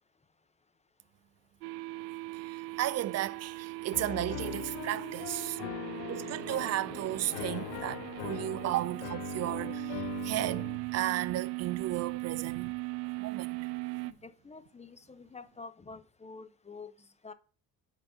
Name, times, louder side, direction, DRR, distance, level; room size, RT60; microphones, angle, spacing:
sound 1, 1.6-14.1, right 21 dB, 75° right, 0.6 m, -39 dB
voice 1, 2.4-5.6 6.1-12.7 13.2-13.6, right 14 dB, 35° right, 0.5 m, -34 dB
Piano, 3.9-10.8, left 19 dB, 65° left, 0.5 m, -41 dB
voice 2, 14.1-17.3, left 4 dB, 15° left, 0.7 m, -48 dB
6.5 x 4.0 x 5.4 m
hypercardioid pair, 65°, 49 cm